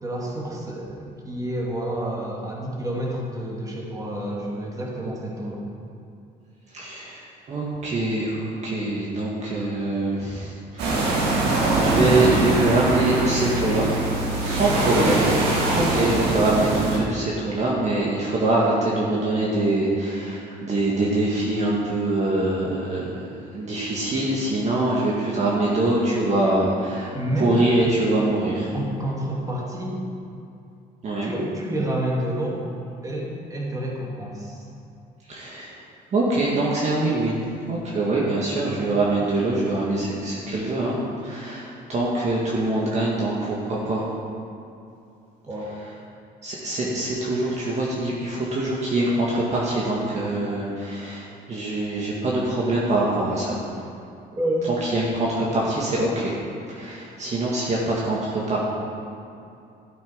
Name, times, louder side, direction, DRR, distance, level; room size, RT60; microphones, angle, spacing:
voice 1, 0.0-5.6 27.1-27.6 28.7-29.9 31.2-32.6 33.0-34.7 38.4-38.5 45.5-45.7 54.4-54.7, right 1 dB, 20° right, -3 dB, 2.6 m, -29 dB
voice 2, 6.7-11.3 11.8-13.9 14.4-15.3 15.7-23.2 23.5-27.1 27.4-28.7 31.0-31.3 35.3-35.7 36.1-37.4 37.7-44.1 46.4-53.6 54.8-56.3 56.7-58.6, right 2 dB, 45° right, -5 dB, 1.8 m, -24 dB
sound 1, 10.8-17.0, right 2 dB, 85° right, 2.1 m, -22 dB
12.5 x 8.2 x 5.1 m, 2.6 s
cardioid pair, 110°, 17 cm